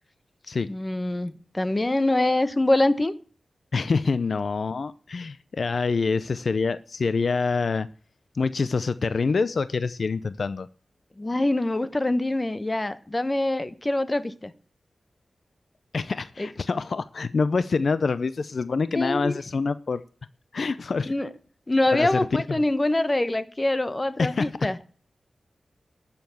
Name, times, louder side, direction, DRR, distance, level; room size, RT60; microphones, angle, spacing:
voice 1, 0.7-3.1 11.2-14.5 16.4-16.5 19.0-19.3 21.1-21.3 21.7-24.8, left 1 dB, 20° left, 1.0 m, -24 dB
voice 2, 3.7-7.9 8.3-10.7 15.9-20.0 20.5-21.1 21.9-22.2 24.2-24.5, left 4 dB, 60° left, 0.5 m, -26 dB
12.5 x 7.0 x 7.8 m
wide cardioid pair, 100°, 0 cm